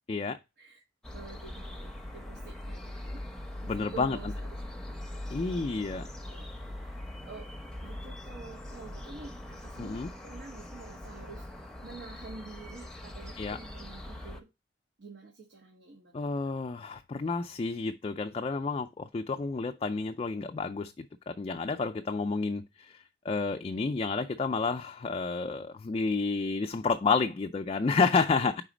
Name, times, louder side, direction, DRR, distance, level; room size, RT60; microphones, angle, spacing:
voice 1, 0.1-0.4 3.7-4.2 5.3-6.1 9.8-10.1 13.4-13.6 16.1-28.6, left 4 dB, 30° left, 0.3 m, -30 dB
sound 1, 1.0-14.4, left 1 dB, 5° left, 0.8 m, -42 dB
voice 2, 1.1-3.2 3.6-4.8 5.2-5.6 5.9-6.5 6.8-7.5 7.8-14.5 15.0-16.4 28.4-28.6, right 4 dB, 75° right, 1.0 m, -49 dB
5.0 x 3.9 x 4.9 m
head